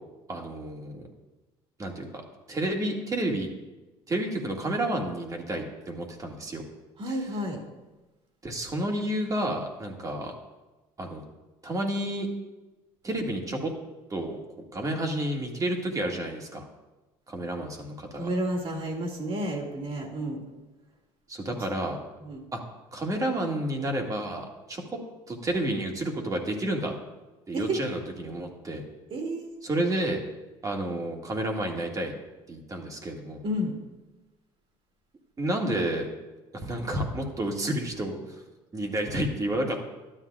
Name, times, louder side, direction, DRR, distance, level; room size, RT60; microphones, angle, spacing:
voice 1, 0.3-1.1 1.8-2.2 2.5-3.5 4.1-6.6 7.1-7.2 8.4-10.3 11.0-11.2 11.6-12.3 13.0-13.7 14.1-14.4 14.7-16.6 17.3-18.3 21.3-22.0 22.5-22.6 22.9-25.0 25.3-26.9 27.5-28.8 29.6-30.2 30.6-32.1 32.5-33.4 35.4-36.1 36.5-38.4 38.7-39.8, right 1 dB, 30° right, 1 dB, 1.9 m, -30 dB
voice 2, 7.0-7.6 18.2-20.4 22.2-22.4 27.5-27.8 29.1-29.5 33.4-33.7, right 1 dB, 50° right, 1 dB, 2.3 m, -31 dB
12.5 x 10.0 x 2.4 m, 1.1 s
supercardioid pair, 85°, 12 cm